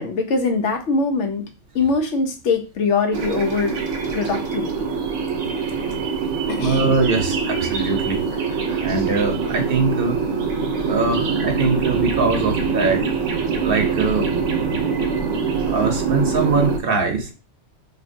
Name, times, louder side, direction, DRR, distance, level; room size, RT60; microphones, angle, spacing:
voice 1, 0.0-1.5 1.7-3.8 4.1-4.9 6.5-6.8, left 4 dB, 75° left, 5 dB, 1.0 m, -22 dB
sound 1, 3.1-16.8, right 5 dB, 85° right, 1.0 m, -24 dB
voice 2, 6.6-8.2 8.7-10.2 10.9-13.0 13.6-14.3 15.7-17.3, right 3 dB, 55° right, 4 dB, 0.8 m, -22 dB
4.3 x 2.7 x 2.6 m, 0.31 s
omnidirectional pair, 1.3 m